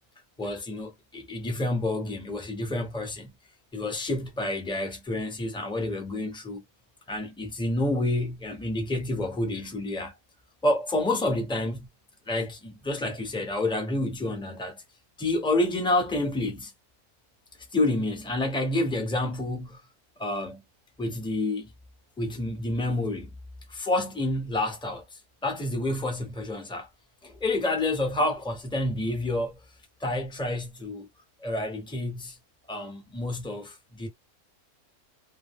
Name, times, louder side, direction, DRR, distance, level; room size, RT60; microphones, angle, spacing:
voice 1, 0.4-3.3 3.7-6.6 7.1-10.1 10.6-11.9 12.3-14.8 15.2-16.7 17.7-19.8 20.2-20.6 21.0-21.7 22.2-23.3 23.7-25.0 25.4-26.9 27.2-29.6 30.0-31.1 31.4-32.4 32.7-34.1, left 2 dB, 5° left, 0.5 m, -29 dB
2.4 x 2.2 x 3.4 m
omnidirectional pair, 1.6 m